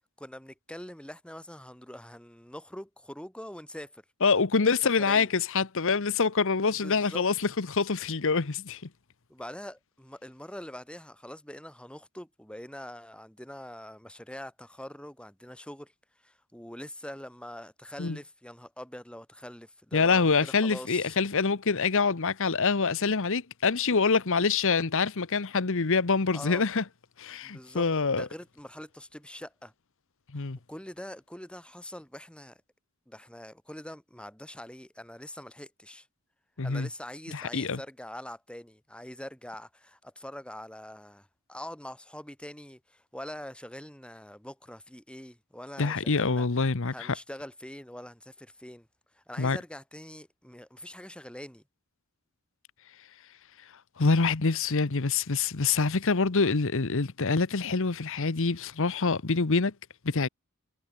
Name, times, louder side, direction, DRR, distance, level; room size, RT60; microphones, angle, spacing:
voice 1, 0.2-4.0 4.6-5.3 6.8-7.2 9.3-15.9 16.2-21.2 26.3-26.6 27.4-29.7 30.3-32.6 33.1-36.1 36.6-46.5 46.9-48.9 49.1-51.6, left 1 dB, 5° left, 5.0 m, -44 dB
voice 2, 4.2-8.8 18.0-18.2 19.9-26.8 27.2-28.3 30.3-30.6 36.6-36.9 37.3-37.8 45.8-47.2 49.4-49.6 54.0-59.7 60.0-60.3, left 4 dB, 65° left, 1.0 m, -26 dB
head